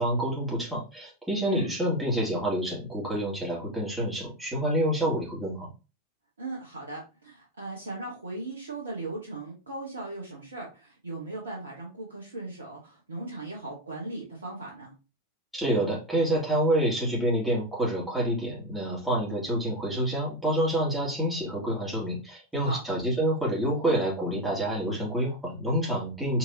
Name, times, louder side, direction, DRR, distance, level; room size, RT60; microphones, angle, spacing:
voice 1, 0.0-5.7 15.5-26.4, right 1 dB, 5° right, -4 dB, 2.3 m, -27 dB
voice 2, 6.4-14.9 22.6-22.8, right 2 dB, 75° right, -3 dB, 1.2 m, -38 dB
4.4 x 4.1 x 2.8 m, 0.31 s
figure-of-eight pair, 90°, 0 cm